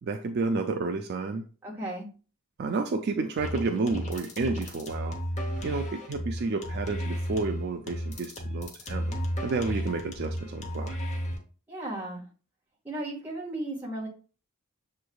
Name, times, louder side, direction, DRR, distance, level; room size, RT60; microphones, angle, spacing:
voice 1, 0.0-1.4 2.6-5.2 5.6-9.2 9.4-11.0, right 3 dB, 50° right, 5 dB, 0.4 m, -30 dB
voice 2, 1.6-2.1 11.7-12.2 12.8-14.1, right 1 dB, 10° right, -5 dB, 1.6 m, -35 dB
sound 1, 3.4-11.4, equal, 30° left, 0.8 m, -33 dB
6.9 x 3.2 x 2.3 m, 0.37 s
head